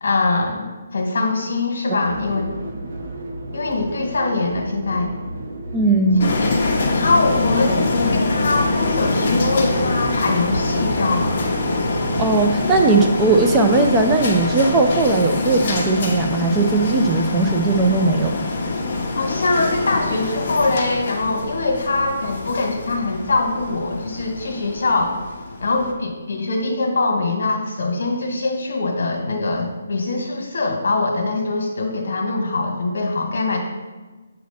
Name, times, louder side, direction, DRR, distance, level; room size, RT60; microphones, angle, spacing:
voice 1, 0.0-0.7 0.9-2.4 3.5-5.1 6.4-6.6 6.9-11.4 19.2-25.2 25.6-33.6, left 3 dB, 65° left, 2 dB, 1.5 m, -22 dB
sound 1, 2.0-12.2, right 2 dB, 45° right, 1.0 m, -32 dB
voice 2, 5.7-6.5 12.2-18.3, right 3 dB, 15° right, 3 dB, 0.4 m, -18 dB
sound 2, 6.2-25.9, left 3 dB, 40° left, 1.1 m, -24 dB
7.2 x 2.9 x 5.7 m, 1.2 s
hypercardioid pair, 165°, 0 cm